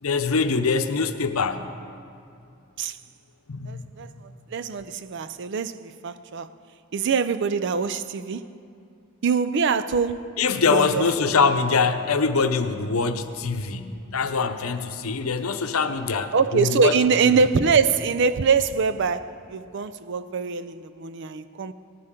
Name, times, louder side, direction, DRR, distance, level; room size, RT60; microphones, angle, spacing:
voice 1, 0.0-1.7 3.5-3.9 10.4-17.0 17.2-17.4, left 5 dB, 85° left, 0.8 m, -23 dB
voice 2, 3.7-6.5 6.9-8.5 9.2-10.4 10.7-11.3 16.3-21.7, right 5 dB, 55° right, 0.5 m, -24 dB
19.0 x 14.0 x 3.8 m
head